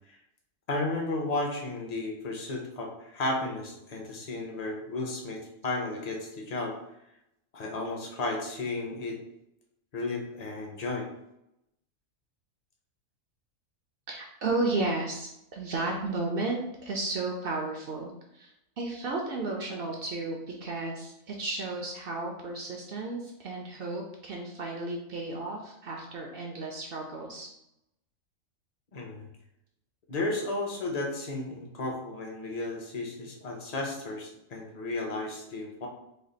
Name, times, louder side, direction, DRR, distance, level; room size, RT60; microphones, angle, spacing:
voice 1, 0.7-6.8 7.5-9.2 9.9-11.1 28.9-29.3 30.1-35.9, left 2 dB, 45° left, 0 dB, 0.5 m, -33 dB
voice 2, 14.1-18.5 18.8-27.5, right 2 dB, 65° right, 1 dB, 0.6 m, -33 dB
3.3 x 2.3 x 3.8 m, 0.83 s
omnidirectional pair, 1.4 m